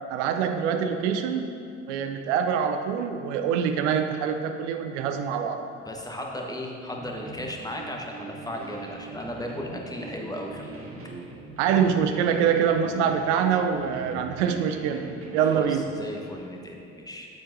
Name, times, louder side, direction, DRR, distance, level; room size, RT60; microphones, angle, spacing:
voice 1, 0.1-1.5 1.9-5.6 11.6-15.8, right 7 dB, 75° right, 6 dB, 0.6 m, -25 dB
voice 2, 5.8-10.8 15.5-17.3, left 1 dB, 10° left, 0 dB, 1.2 m, -36 dB
sound 1, 6.9-15.7, right 3 dB, 35° right, 1.4 m, -41 dB
8.8 x 7.5 x 2.6 m, 2.5 s
hypercardioid pair, 55°, 36 cm